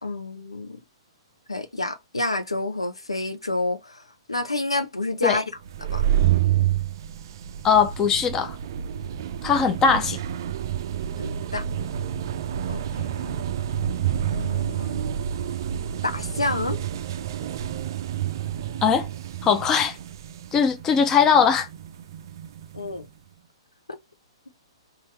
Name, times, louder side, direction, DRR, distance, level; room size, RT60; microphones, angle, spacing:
voice 1, 0.0-0.8 1.5-4.0 4.3-5.4 5.9-6.1 11.2-11.7 12.7-13.5 14.3-15.1 16.0-16.8 22.7-23.1, left 2 dB, 80° left, 0.8 m, -29 dB
sound 1, 5.6-23.0, right 10 dB, 45° right, 0.4 m, -29 dB
voice 2, 7.6-8.6 9.4-10.2 18.8-19.1 19.4-20.0 20.5-21.7, left 6 dB, 20° left, 0.6 m, -20 dB
4.3 x 2.6 x 3.1 m
figure-of-eight pair, 115°, 3 cm